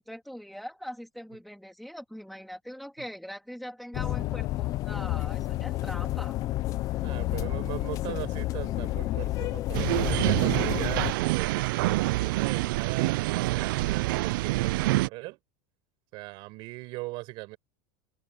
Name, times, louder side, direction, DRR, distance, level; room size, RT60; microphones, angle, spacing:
voice 1, 0.0-6.4, equal, ahead, 2.8 m, -42 dB
Bus inside sm, 3.9-11.1, left 16 dB, 30° left, 0.6 m, -30 dB
voice 2, 7.0-15.4 16.1-17.6, right 22 dB, 45° right, 5.3 m, -39 dB
sound 1, 9.7-15.1, right 19 dB, 65° right, 0.5 m, -26 dB
open air
supercardioid pair, 165°, 12 cm